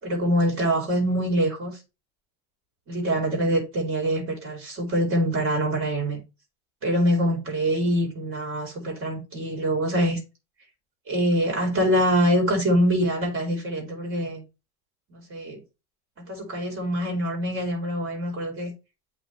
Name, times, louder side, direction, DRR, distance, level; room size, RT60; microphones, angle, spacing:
voice 1, 0.0-1.8 2.9-6.2 6.8-10.2 11.1-14.4 15.1-15.6 16.2-18.7, equal, 40° right, 4.4 m, -24 dB
8.5 x 6.1 x 3.2 m
supercardioid pair, 105°, 33 cm